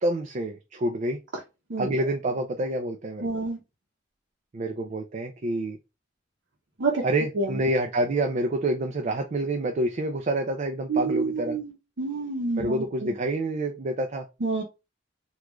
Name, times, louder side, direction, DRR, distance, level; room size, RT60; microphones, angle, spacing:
voice 1, 0.0-1.2 1.8-3.3 4.5-5.8 7.0-11.6 12.6-14.3, right 1 dB, 40° right, 5 dB, 0.4 m, -27 dB
voice 2, 3.2-3.6 6.8-7.0 7.4-7.5 10.9-11.7 12.0-13.1 14.4-14.6, right 3 dB, 70° right, -2 dB, 0.8 m, -28 dB
3.5 x 2.3 x 3.0 m, 0.26 s
head